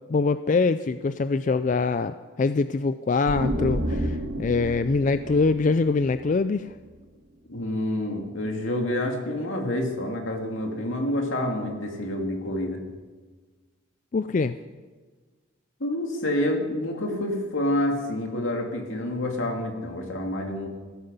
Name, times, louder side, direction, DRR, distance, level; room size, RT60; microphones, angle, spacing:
voice 1, 0.1-6.7 14.1-14.6, left 4 dB, 40° left, 12 dB, 0.3 m, -24 dB
sound 1, 3.3-6.9, equal, 80° right, 2.3 m, -31 dB
voice 2, 7.5-12.8 15.8-20.7, left 1 dB, 75° left, 2 dB, 2.4 m, -28 dB
16.0 x 13.5 x 5.4 m, 1.4 s
head